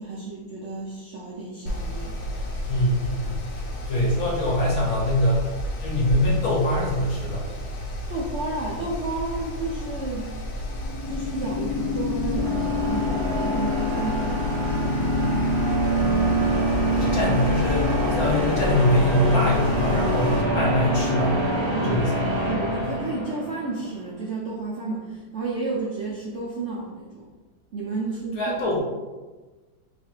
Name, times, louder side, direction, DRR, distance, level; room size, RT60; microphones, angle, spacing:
voice 1, 0.0-2.2 8.1-10.3 11.1-15.4 21.7-22.2 22.5-27.3 27.7-28.7, right 3 dB, 85° right, -4 dB, 0.6 m, -32 dB
Mechanical fan, 1.7-20.4, equal, 85° left, 1.4 m, -33 dB
voice 2, 2.7-3.4 3.9-7.4 17.0-21.3 21.8-22.2 28.4-28.8, left 1 dB, 60° left, -4 dB, 1.3 m, -23 dB
sound 1, 10.7-23.7, equal, 50° right, 0.8 m, -25 dB
3.2 x 2.4 x 4.3 m, 1.3 s
omnidirectional pair, 1.9 m